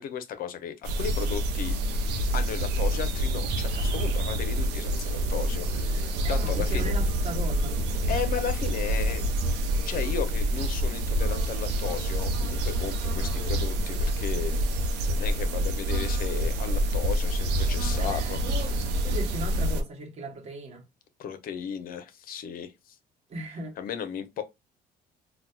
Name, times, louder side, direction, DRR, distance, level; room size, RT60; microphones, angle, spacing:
voice 1, 0.0-1.8 2.3-7.0 8.1-9.4 9.8-14.6 15.0-18.4 21.2-23.0 23.8-24.4, left 8 dB, 60° left, 0.6 m, -35 dB
sound 1, 0.8-19.8, right 1 dB, 85° right, 0.6 m, -27 dB
voice 2, 6.2-7.8 17.9-18.8 19.0-20.8 23.3-23.8, right 2 dB, 40° right, 1.0 m, -37 dB
4.1 x 2.1 x 2.3 m
cardioid pair, 110°, 17 cm